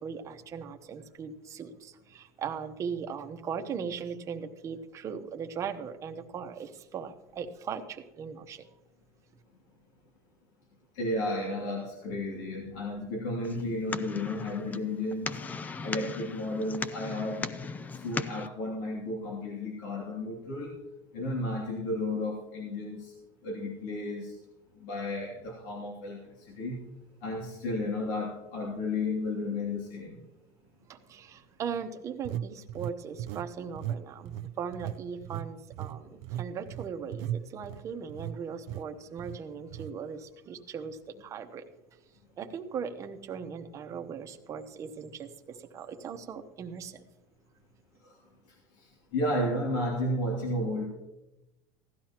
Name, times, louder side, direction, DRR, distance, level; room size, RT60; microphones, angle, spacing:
voice 1, 0.0-8.7 30.9-41.6 42.4-47.0, right 6 dB, 30° right, 6 dB, 0.9 m, -39 dB
voice 2, 10.9-15.4 15.8-17.5 17.9-20.7 21.1-23.1 23.4-24.3 24.8-26.8 27.2-30.2 49.1-50.9, left 1 dB, 75° left, -2 dB, 2.5 m, -33 dB
sound 1, 13.4-18.5, left 4 dB, 15° left, 0.3 m, -38 dB
sound 2, 27.8-27.9 28.5-28.7 32.2-33.5 33.8-34.0 34.3-38.4 38.7-38.9 39.2-39.4 39.7-39.9, right 11 dB, 65° right, 0.5 m, -37 dB
16.0 x 12.0 x 2.9 m, 0.98 s
cardioid pair, 155°, 11 cm